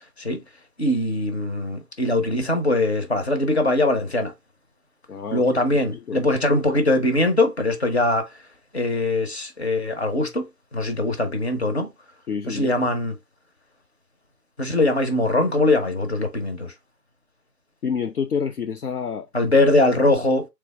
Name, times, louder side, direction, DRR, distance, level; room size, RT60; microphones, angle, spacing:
voice 1, 0.8-4.3 5.3-8.3 8.7-11.9 12.5-13.2 14.6-16.7 19.3-20.4, left 2 dB, 40° left, 0.9 m, -21 dB
voice 2, 5.1-5.4 5.9-6.2 12.3-12.8 17.8-19.3, left 6 dB, 65° left, 0.5 m, -28 dB
3.6 x 3.4 x 3.4 m
figure-of-eight pair, 155°, 49 cm